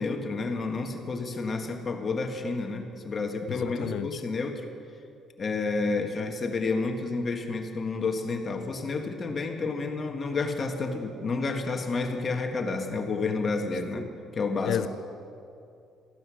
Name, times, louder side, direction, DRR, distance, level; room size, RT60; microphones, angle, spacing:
voice 1, 0.0-4.6 5.4-14.1 14.3-14.8, left 3 dB, 35° left, 1.6 m, -30 dB
voice 2, 3.5-4.2 14.7-14.9, left 10 dB, 70° left, 0.5 m, -31 dB
14.5 x 12.0 x 6.3 m
cardioid pair, 105°, 0 cm